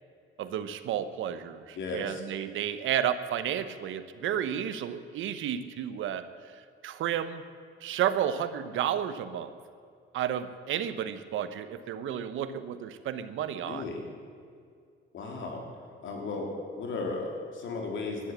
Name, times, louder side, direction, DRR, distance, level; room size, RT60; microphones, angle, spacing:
voice 1, 0.4-6.3 6.8-7.4 7.8-9.5 10.1-13.9, right 10 dB, 80° right, 12 dB, 1.0 m, -32 dB
voice 2, 1.8-2.2 13.7-14.0 15.1-15.7 16.0-18.3, left 3 dB, 75° left, 1 dB, 3.5 m, -35 dB
16.5 x 11.5 x 7.4 m, 2.3 s
cardioid pair, 90°, 20 cm